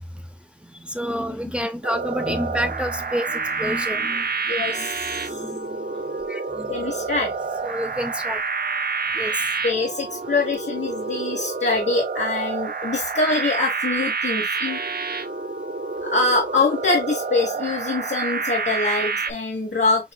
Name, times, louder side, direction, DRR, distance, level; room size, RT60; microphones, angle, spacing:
voice 1, 0.6-4.3 4.6-7.1 7.6-8.4 9.1-9.5, equal, 5° right, 0.7 m, -30 dB
sound 1, 1.8-19.3, right 4 dB, 60° right, 0.6 m, -28 dB
voice 2, 4.5-5.3 6.7-7.3 9.6-14.8 16.0-20.1, left 3 dB, 85° left, 1.2 m, -24 dB
6.1 x 3.3 x 2.2 m
wide cardioid pair, 60°, 18 cm